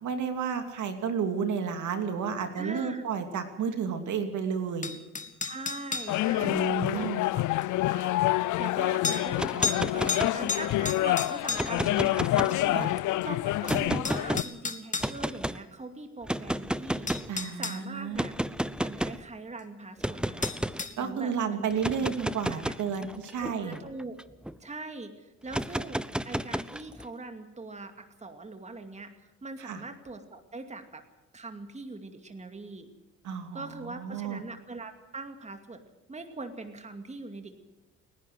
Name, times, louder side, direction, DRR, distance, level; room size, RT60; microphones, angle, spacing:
voice 1, 0.0-4.9 6.4-7.2 12.7-12.9 17.3-18.2 21.0-23.8 29.6-29.8 33.2-34.4, right 6 dB, 75° right, 6 dB, 2.8 m, -32 dB
voice 2, 2.5-3.0 5.4-17.1 17.6-18.3 18.8-20.5 21.0-22.1 22.5-22.7 23.4-24.2 24.6-29.1 29.4-31.0 31.3-32.9 33.5-35.8 36.1-37.6, right 3 dB, 20° right, 6 dB, 2.4 m, -42 dB
sound 1, 4.8-6.2 7.6-7.7 9.0-9.2 9.6-9.8 10.1-11.8 13.2-13.3 13.7-15.1 16.5-16.6 17.1-17.8 20.4-20.9, left 5 dB, 25° left, 1.6 m, -32 dB
sound 2, 6.1-14.4, left 16 dB, 80° left, 0.6 m, -27 dB
sound 3, 9.3-10.8 11.4-13.0 13.7-14.4 15.0-15.6 16.2-17.3 18.2-19.2 20.0-20.8 21.7-24.5 25.5-27.0, right 1 dB, 5° right, 0.7 m, -32 dB
30.0 x 11.0 x 7.9 m, 1.0 s
cardioid pair, 90°, 30 cm